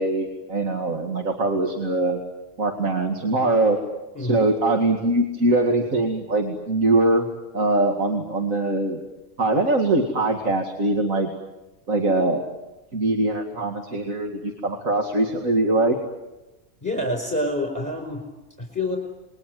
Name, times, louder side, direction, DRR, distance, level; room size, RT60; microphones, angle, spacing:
voice 1, 0.0-2.2 2.6-3.8 4.2-7.3 7.5-9.0 9.4-11.3 11.9-12.4 12.9-16.0, right 2 dB, 70° right, 3 dB, 2.6 m, -22 dB
voice 2, 4.1-4.5 16.8-18.2 18.6-19.0, left 1 dB, 10° left, 3 dB, 4.9 m, -27 dB
28.5 x 22.0 x 9.4 m, 1.0 s
omnidirectional pair, 1.4 m